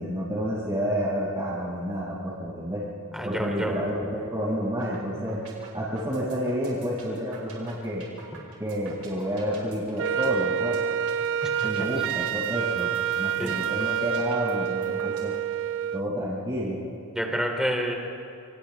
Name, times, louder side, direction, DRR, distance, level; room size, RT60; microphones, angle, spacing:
voice 1, 0.0-2.8 3.2-5.4 5.7-8.1 8.6-10.8 11.6-15.3 15.9-16.8, equal, 20° right, -11 dB, 6.0 m, -29 dB
voice 2, 3.1-3.7 8.3-8.4 11.4-11.5 13.4-13.5 17.1-17.9, equal, 5° right, 1 dB, 3.0 m, -28 dB
sound 1, 4.8-5.0 5.3-15.3, right 5 dB, 85° right, 5.7 m, -47 dB
Wind instrument woodwind instrument, 10.0-16.1, right 9 dB, 60° right, 0.5 m, -28 dB
29.5 x 26.5 x 3.5 m, 2.5 s
head